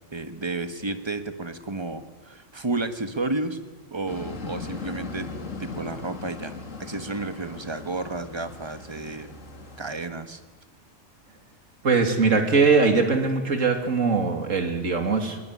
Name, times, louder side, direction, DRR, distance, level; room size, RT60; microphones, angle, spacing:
voice 1, 0.1-3.6 3.9-5.3 5.6-9.3 9.8-10.4, right 2 dB, 20° right, 9 dB, 1.4 m, -32 dB
sound 1, 4.1-9.9, left 4 dB, 80° left, 2.3 m, -39 dB
voice 2, 11.8-15.4, right 4 dB, 85° right, 4 dB, 2.9 m, -21 dB
21.5 x 19.0 x 9.7 m, 1.3 s
omnidirectional pair, 1.3 m